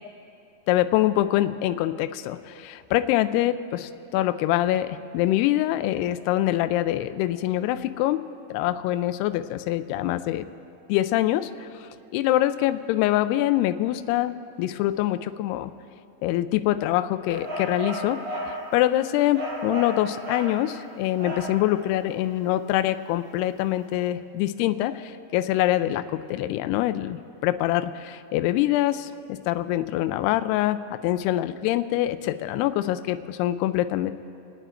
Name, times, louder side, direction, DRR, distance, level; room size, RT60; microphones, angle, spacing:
voice 1, 0.7-8.2 8.5-10.5 10.9-11.7 12.1-15.7 16.2-18.2 18.7-30.8 31.0-34.1, left 14 dB, 90° left, 10 dB, 2.3 m, -24 dB
sound 1, 17.3-18.6 19.3-20.6 21.2-21.6, equal, 30° right, 3.1 m, -33 dB
27.0 x 9.2 x 4.4 m, 2.6 s
omnidirectional pair, 5.2 m